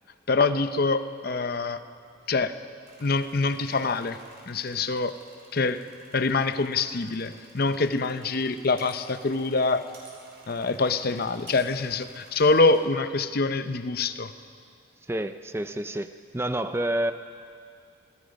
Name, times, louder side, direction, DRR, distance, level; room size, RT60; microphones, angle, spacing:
voice 1, 0.3-1.8 2.3-2.5 3.0-4.2 4.5-5.2 5.5-5.8 6.1-9.9 10.5-14.3, left 3 dB, 45° left, 11 dB, 0.7 m, -25 dB
sound 1, 2.9-12.8, right 3 dB, 50° right, 4.9 m, -54 dB
voice 2, 15.1-17.1, right 1 dB, 10° right, 9 dB, 0.4 m, -29 dB
26.0 x 20.0 x 5.2 m, 2.4 s
head